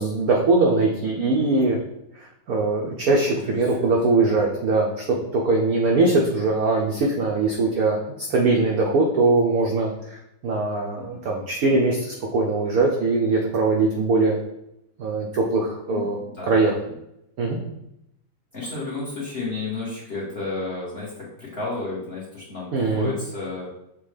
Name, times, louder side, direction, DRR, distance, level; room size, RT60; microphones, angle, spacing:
voice 1, 0.0-1.8 2.2-10.2 10.4-14.4 15.0-16.2 16.4-16.7 17.4-17.6 22.7-23.1, right 3 dB, 75° right, 0 dB, 0.8 m, -21 dB
voice 2, 3.3-3.8 4.1-4.4 11.0-11.2 15.9-16.5 18.5-23.7, left 3 dB, 40° left, -6 dB, 1.0 m, -32 dB
6.4 x 2.2 x 3.2 m, 0.82 s
omnidirectional pair, 2.2 m